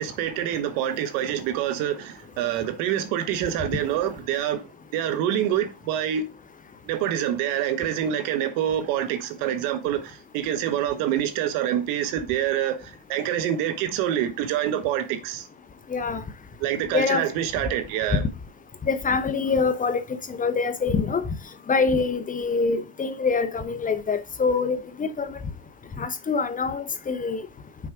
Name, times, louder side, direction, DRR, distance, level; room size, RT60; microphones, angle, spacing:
voice 1, 0.0-4.6 4.9-6.2 6.9-12.8 13.1-15.5 16.6-18.2, right 10 dB, 85° right, 1.2 m, -26 dB
voice 2, 15.9-16.2 16.9-17.2 18.9-20.0 20.3-21.2 21.7-25.4 26.0-27.4, left 4 dB, 25° left, 0.8 m, -25 dB
6.2 x 4.9 x 4.6 m
cardioid pair, 110°, 32 cm